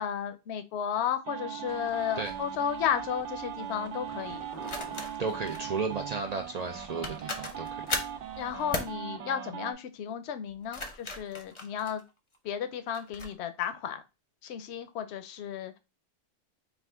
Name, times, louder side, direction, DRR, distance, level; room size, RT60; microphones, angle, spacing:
voice 1, 0.0-4.4 8.4-12.0 12.4-14.0 14.4-15.8, left 9 dB, 70° left, 9 dB, 0.8 m, -33 dB
sound 1, 1.2-9.7, right 9 dB, 80° right, 1.0 m, -39 dB
sound 2, 1.7-8.8, right 2 dB, 40° right, 0.9 m, -52 dB
sound 3, 2.2-2.4 4.6-5.6 6.7-6.8 7.0-8.2 8.7-9.0 10.5-12.4 12.9-13.3, left 2 dB, 35° left, 0.6 m, -37 dB
voice 2, 5.2-7.8, right 4 dB, 60° right, 4 dB, 0.4 m, -34 dB
4.3 x 2.4 x 3.4 m, 0.27 s
omnidirectional pair, 1.2 m